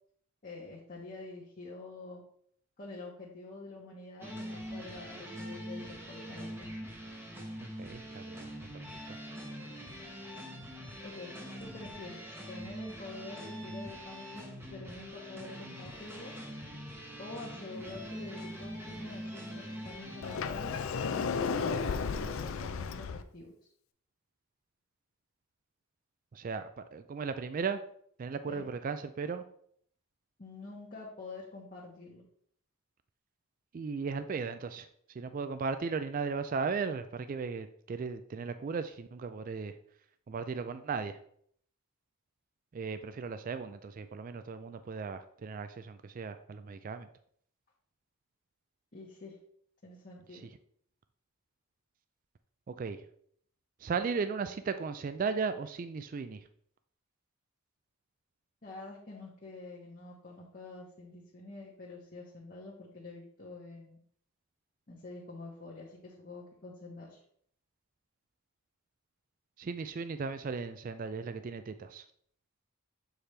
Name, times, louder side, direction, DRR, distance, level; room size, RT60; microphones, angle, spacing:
voice 1, 0.4-2.2 2.8-6.8 11.0-12.2 12.5-16.3 17.2-23.5 28.5-28.7 30.4-32.2 48.9-49.4 49.8-50.4 58.6-64.0 64.9-67.2, left 2 dB, 40° left, -5 dB, 1.0 m, -47 dB
sound 1, 4.2-20.4, equal, 10° right, 0.9 m, -43 dB
voice 2, 7.6-8.5 9.1-9.2 26.3-27.8 28.2-29.4 33.7-34.9 35.1-39.7 40.3-41.2 42.7-47.1 50.3-50.4 52.7-53.0 53.8-56.4 69.6-72.0, right 5 dB, 40° right, 11 dB, 0.3 m, -36 dB
Sliding door, 20.2-23.2, left 5 dB, 70° left, 0.4 m, -33 dB
6.7 x 4.3 x 3.3 m, 0.64 s
head